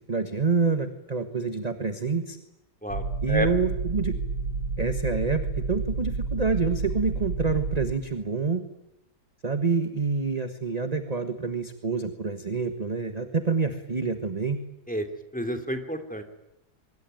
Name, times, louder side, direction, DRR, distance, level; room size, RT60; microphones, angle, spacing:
voice 1, 0.1-2.4 3.2-4.2 4.8-8.6 9.4-14.6, right 4 dB, 25° right, 8 dB, 1.4 m, -27 dB
voice 2, 2.8-3.5 14.9-15.1 15.3-16.2, equal, 5° left, 7 dB, 2.7 m, -30 dB
Sc-Fi ship background sound, 2.9-7.9, right 4 dB, 90° right, 3.3 m, -30 dB
24.0 x 23.0 x 9.2 m, 0.88 s
omnidirectional pair, 1.9 m